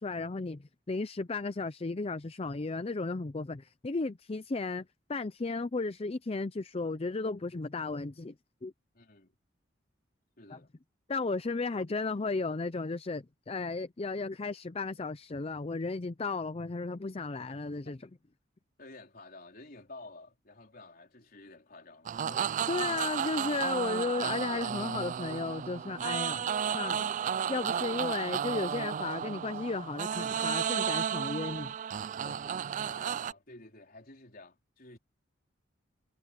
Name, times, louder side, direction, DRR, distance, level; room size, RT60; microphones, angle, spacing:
voice 1, 0.0-4.8 5.1-8.3 8.6-8.7 10.5-10.6 11.1-18.0 22.3-22.4 22.7-26.5 26.7-27.2 27.5-31.7 32.2-32.5, left 3 dB, 30° left, 0.5 m, -34 dB
voice 2, 8.9-9.3 10.4-10.7 11.7-12.0 17.7-18.0 18.8-22.1 32.7-35.0, left 2 dB, 50° left, 4.3 m, -52 dB
sound 1, 22.1-33.3, right 8 dB, 40° right, 0.3 m, -33 dB
head